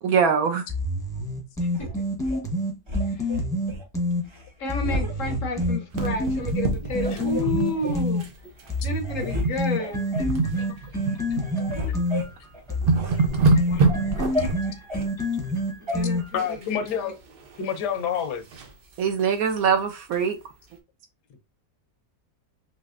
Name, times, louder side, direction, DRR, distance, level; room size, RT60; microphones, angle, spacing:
voice 1, 0.0-0.6 19.0-20.4, right 6 dB, 70° right, 1.0 m, -22 dB
sound 1, 0.7-4.2 4.7-8.2 8.7-16.5, equal, 5° left, 0.7 m, -28 dB
sound 2, 1.7-2.4 2.9-3.8 4.3-4.5 4.8-5.8 6.3-6.4 6.9-8.0 8.6-8.7 9.0-9.5 9.8-10.4 10.9-11.1 11.4-13.2 13.6-15.1 15.9-16.0, left 1 dB, 35° right, 0.4 m, -32 dB
voice 2, 3.0-3.3 4.6-8.3 8.8-10.1 15.8-17.1, left 3 dB, 65° left, 0.9 m, -31 dB
sound 3, 5.9-8.3 8.6-8.8 9.3-9.6 9.9-11.8 12.3-12.4 12.7-14.6 16.4-16.9 17.3-18.7 19.2-19.3 19.6-19.7 20.1-20.2, right 3 dB, 90° right, 0.5 m, -26 dB
voice 3, 16.3-17.2 17.6-18.4, left 8 dB, 80° left, 1.3 m, -28 dB
4.1 x 3.0 x 2.4 m
omnidirectional pair, 1.8 m